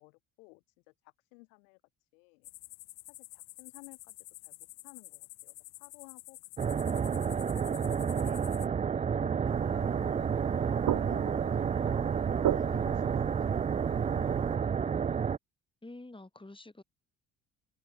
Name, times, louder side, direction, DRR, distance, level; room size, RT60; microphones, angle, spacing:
voice 1, 0.0-2.5 3.1-4.2 4.4-4.6 4.8-8.5 9.1-10.8 11.1-15.1, left 31 dB, 85° left, 2.2 m, -57 dB
sound 1, 2.4-8.7, left 20 dB, 65° left, 0.7 m, -50 dB
sound 2, 6.6-15.4, right 7 dB, 20° right, 0.4 m, -30 dB
sound 3, 9.5-14.6, right 12 dB, 55° right, 1.2 m, -37 dB
voice 2, 15.8-16.8, left 2 dB, 10° left, 4.6 m, -48 dB
hypercardioid pair, 60°, 40 cm